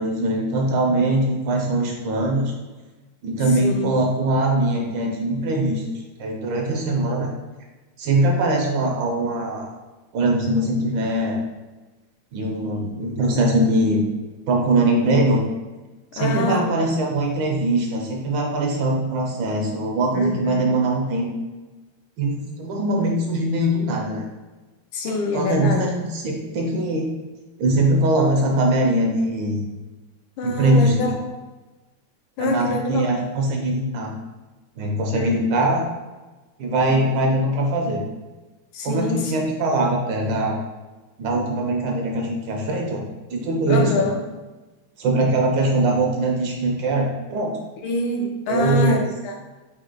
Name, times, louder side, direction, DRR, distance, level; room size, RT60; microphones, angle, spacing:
voice 1, 0.0-2.5 3.2-5.8 6.2-7.3 8.0-9.7 10.1-11.4 12.3-14.0 14.5-15.4 16.1-21.3 22.2-24.2 25.1-27.0 27.6-29.6 30.4-31.1 32.4-34.1 34.8-35.8 36.6-38.0 38.8-40.6 41.2-43.0 43.3-43.9 45.0-47.6 48.5-49.1, right 1 dB, 75° right, 0 dB, 1.2 m, -21 dB
voice 2, 3.5-4.1 16.2-17.0 20.1-20.8 24.9-25.9 30.4-31.2 32.4-33.0 35.1-35.3 38.7-39.3 43.7-44.2 47.8-49.4, left 2 dB, 75° left, 1 dB, 1.4 m, -25 dB
4.3 x 2.7 x 3.8 m, 1.2 s
omnidirectional pair, 2.3 m